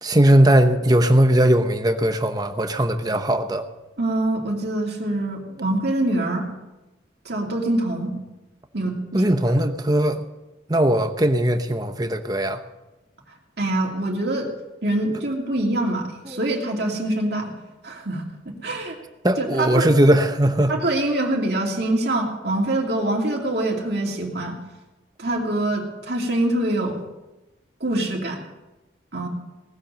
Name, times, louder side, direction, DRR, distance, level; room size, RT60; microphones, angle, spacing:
voice 1, 0.0-3.6 9.1-10.3 10.7-12.6 16.2-16.4 19.2-20.7, right 1 dB, 20° right, 8 dB, 0.9 m, -19 dB
voice 2, 4.0-6.5 7.2-8.1 8.7-9.3 13.6-14.5 14.8-17.5 17.8-19.0 19.4-19.9 20.7-24.6 25.2-27.0 27.8-28.4 29.1-29.3, right 1 dB, 55° right, -1 dB, 2.8 m, -24 dB
18.5 x 7.8 x 7.6 m, 1.0 s
head